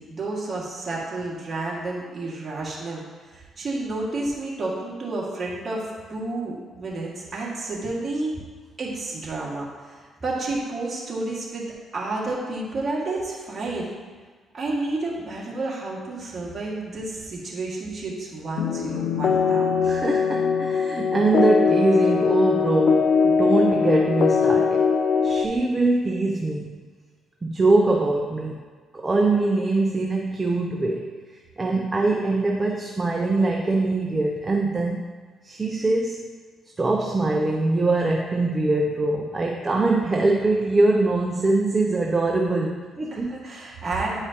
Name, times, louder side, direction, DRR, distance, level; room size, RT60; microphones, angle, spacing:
voice 1, 0.0-8.4 8.8-11.7 11.9-13.9 14.5-19.7 43.1-44.2, right 2 dB, 40° right, -4 dB, 1.9 m, -30 dB
sound 1, 18.6-25.5, left 6 dB, 65° left, 0.4 m, -21 dB
voice 2, 19.8-24.9 25.2-26.8 27.4-28.6 28.9-31.2 31.6-35.0 35.4-36.3 36.8-43.3, right 2 dB, 25° right, 1 dB, 0.6 m, -23 dB
9.8 x 4.8 x 2.9 m, 1.5 s
cardioid pair, 90°, 0 cm